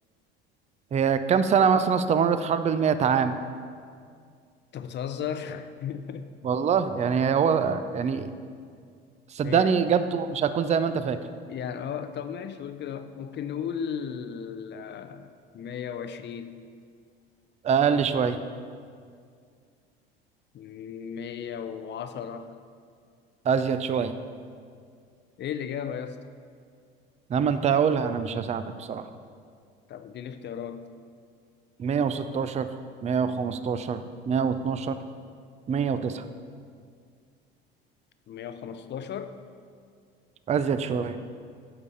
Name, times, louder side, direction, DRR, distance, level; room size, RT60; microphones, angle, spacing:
voice 1, 0.9-3.4 6.4-8.3 9.3-11.2 17.6-18.4 23.5-24.1 27.3-29.0 31.8-32.7 33.0-34.0 34.3-35.0 35.7-36.2 40.5-41.2, right 6 dB, 25° right, 11 dB, 0.4 m, -24 dB
voice 2, 4.7-6.3 8.1-8.2 9.4-9.7 11.5-16.6 20.5-22.6 25.4-26.2 29.9-30.9 38.3-39.4, left 8 dB, 40° left, 10 dB, 0.5 m, -35 dB
8.5 x 4.9 x 5.5 m, 2.2 s
hypercardioid pair, 70°, 29 cm